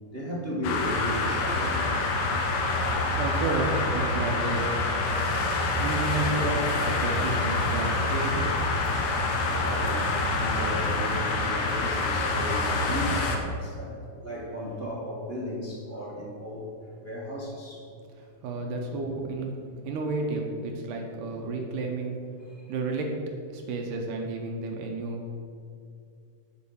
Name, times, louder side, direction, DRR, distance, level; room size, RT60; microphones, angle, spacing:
voice 1, 0.1-1.8 9.5-16.7 17.0-17.9 22.4-22.7, equal, 50° right, -5 dB, 0.7 m, -35 dB
sound 1, 0.6-13.4, left 2 dB, 80° left, 2.7 m, -26 dB
voice 2, 3.2-4.7 5.8-8.5 18.4-19.5 19.8-22.2 22.7-23.2 23.5-25.2, right 3 dB, 80° right, 2 dB, 2.5 m, -31 dB
10.5 x 5.2 x 7.0 m, 2.4 s
omnidirectional pair, 3.7 m